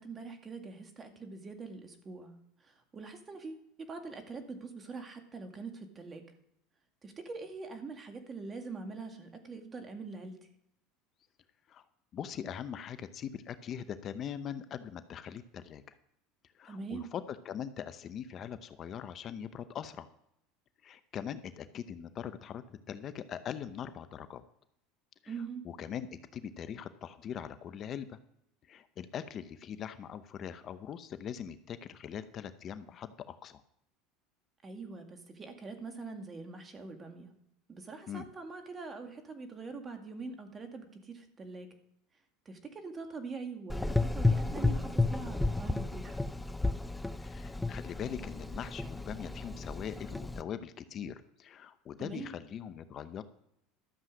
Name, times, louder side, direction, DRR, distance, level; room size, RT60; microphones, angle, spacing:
voice 1, 0.0-2.3 2.6-6.2 7.0-10.4 16.6-17.1 25.3-25.6 34.6-37.3 37.7-41.7 42.5-46.2 52.0-52.3, right 4 dB, 30° right, 5 dB, 2.1 m, -43 dB
voice 2, 12.1-16.0 16.5-20.1 20.8-24.4 25.2-25.4 25.6-28.2 28.6-33.6 38.1-38.3 47.2-53.2, left 8 dB, 45° left, 12 dB, 0.8 m, -41 dB
Gurgling / Engine, 43.7-50.4, left 2 dB, 10° left, 0.6 m, -32 dB
13.0 x 7.5 x 6.2 m, 0.77 s
hypercardioid pair, 90°, 0 cm